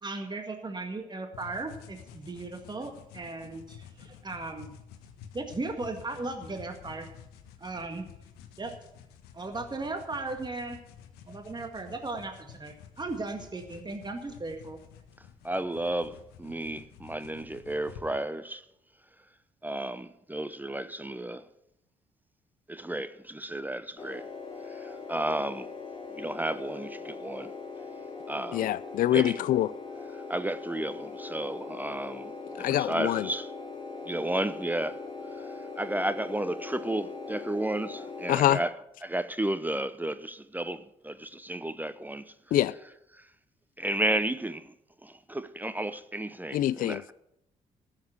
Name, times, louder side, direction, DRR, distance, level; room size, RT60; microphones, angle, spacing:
voice 1, 0.0-4.7 5.3-7.1 7.6-8.1 8.6-8.7 9.3-10.8 11.3-14.8, right 3 dB, 25° right, 1.9 m, -37 dB
sound 1, 1.3-18.0, left 8 dB, 80° left, 1.2 m, -51 dB
voice 2, 15.4-18.6 19.6-21.4 22.7-24.3 24.7-25.7 26.1-27.5 28.3-28.7 29.1-29.4 30.3-32.3 32.6-33.5 34.1-35.0 35.8-38.7 39.0-42.3 43.8-44.7 45.0-47.1, right 1 dB, 10° right, 0.8 m, -32 dB
sound 2, 24.0-38.3, left 4 dB, 35° left, 4.0 m, -41 dB
voice 3, 28.5-29.7 32.6-33.3 38.3-38.6 42.5-42.8 46.5-47.0, left 13 dB, 60° left, 0.4 m, -25 dB
14.0 x 7.4 x 8.0 m
hypercardioid pair, 50°, 16 cm